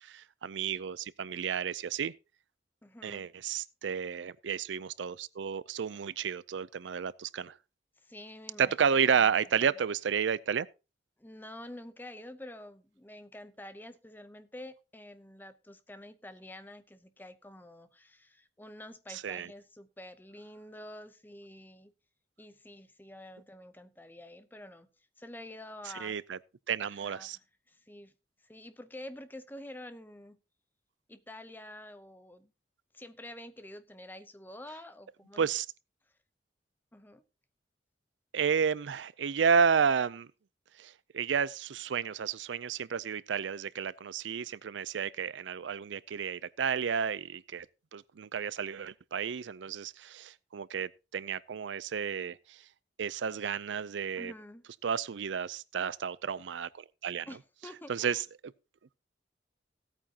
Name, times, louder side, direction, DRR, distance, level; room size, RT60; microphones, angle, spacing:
voice 1, 0.1-2.1 3.0-7.5 8.6-10.7 19.1-19.5 26.0-26.4 26.7-27.4 35.4-35.7 38.3-40.3 40.8-47.7 47.9-52.4 53.0-54.3 54.8-57.3 57.9-58.2, right 6 dB, 90° right, 0.5 m, -31 dB
voice 2, 2.8-3.3 8.0-8.7 11.2-21.9 22.4-24.9 25.2-26.2 26.8-28.1 28.4-30.4 31.1-32.5 32.9-35.5 36.9-37.2 54.2-54.6 57.3-58.2, left 1 dB, 10° left, 0.7 m, -48 dB
16.5 x 8.9 x 2.8 m
head